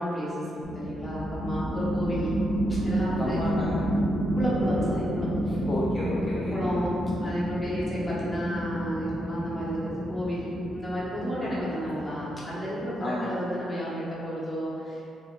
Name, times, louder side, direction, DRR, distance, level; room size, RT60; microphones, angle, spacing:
voice 1, 0.0-2.3 2.7-3.4 4.4-5.3 6.5-6.9 7.2-15.1, equal, 15° left, -8 dB, 0.9 m, -32 dB
sound 1, 0.6-12.7, right 1 dB, 15° right, 0.8 m, -30 dB
voice 2, 3.2-3.8 5.5-6.9 11.4-11.7 13.0-13.4, left 1 dB, 35° left, -6 dB, 0.3 m, -32 dB
3.6 x 2.1 x 2.3 m, 2.7 s
cardioid pair, 90°, 0 cm